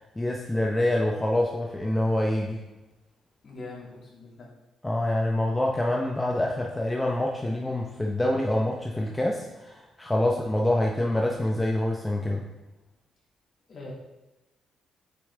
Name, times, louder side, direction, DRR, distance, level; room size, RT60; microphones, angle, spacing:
voice 1, 0.2-2.6 4.8-12.4, left 1 dB, 10° left, -1 dB, 0.7 m, -26 dB
voice 2, 3.4-4.5 10.2-10.4 13.7-13.9, left 3 dB, 45° left, -5 dB, 2.5 m, -43 dB
6.9 x 5.2 x 3.6 m, 1.0 s
cardioid pair, 90°, 0 cm